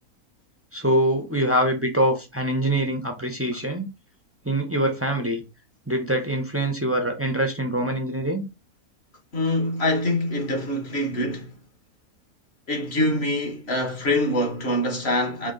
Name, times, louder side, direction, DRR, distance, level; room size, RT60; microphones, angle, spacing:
voice 1, 0.7-3.9 4.4-5.4 5.9-8.4, right 1 dB, 15° right, 0.4 m, -24 dB
voice 2, 9.3-11.5 12.7-15.5, left 1 dB, 50° left, 1.2 m, -24 dB
4.4 x 2.8 x 3.8 m
omnidirectional pair, 1.6 m